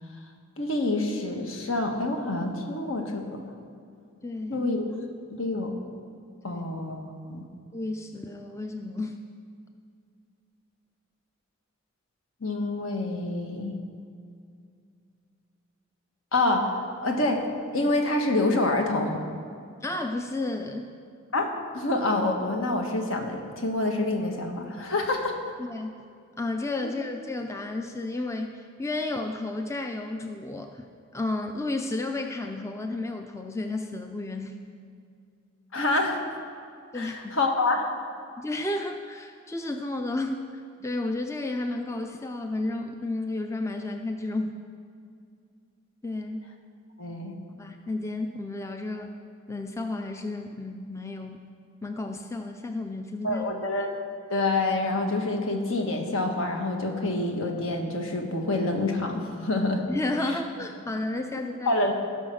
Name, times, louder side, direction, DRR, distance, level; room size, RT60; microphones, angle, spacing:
voice 1, 0.6-3.4 4.5-4.9 5.4-5.7 6.4-7.4 12.4-13.8 16.3-16.7 17.0-17.4 17.7-19.2 21.3-21.5 21.7-25.3 26.8-26.9 35.7-36.2 36.9-37.9 47.0-47.3 53.2-53.9 54.3-59.8 60.2-60.3 61.6-61.9, left 2 dB, 70° left, 3 dB, 1.5 m, -27 dB
voice 2, 4.2-4.7 6.5-6.6 7.7-9.2 19.8-20.9 25.6-25.9 26.4-30.9 31.1-34.5 36.9-37.4 38.4-44.6 46.0-46.5 47.5-49.1 49.5-51.4 51.8-53.6 59.9-61.9, left 2 dB, 15° left, 5 dB, 0.4 m, -32 dB
16.0 x 5.6 x 6.3 m, 2.3 s
head